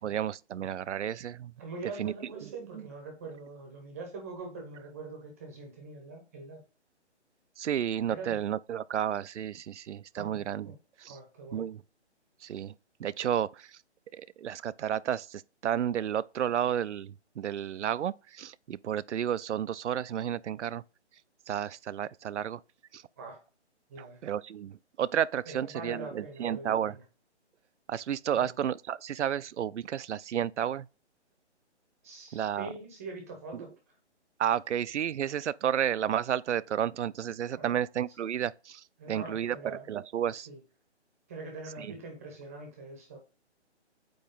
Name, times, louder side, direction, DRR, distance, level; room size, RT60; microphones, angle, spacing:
voice 1, 0.0-1.5 2.0-2.1 2.4-2.8 7.6-10.7 11.0-11.2 11.5-11.8 12.4-12.7 13.0-13.7 14.1-20.8 21.5-22.6 22.9-23.0 24.0-27.0 27.9-30.9 32.3-32.7 34.4-40.5 41.8-41.9, right 9 dB, 85° right, 0.5 m, -32 dB
voice 2, 1.6-6.6 8.1-8.4 10.1-10.8 11.1-11.7 23.2-23.4 23.9-24.2 25.5-27.0 28.3-28.6 32.0-33.7 37.5-37.8 39.0-39.9 40.3-40.6 41.3-43.2, right 3 dB, 15° right, 0.8 m, -43 dB
8.6 x 3.0 x 3.9 m
hypercardioid pair, 165°, 35 cm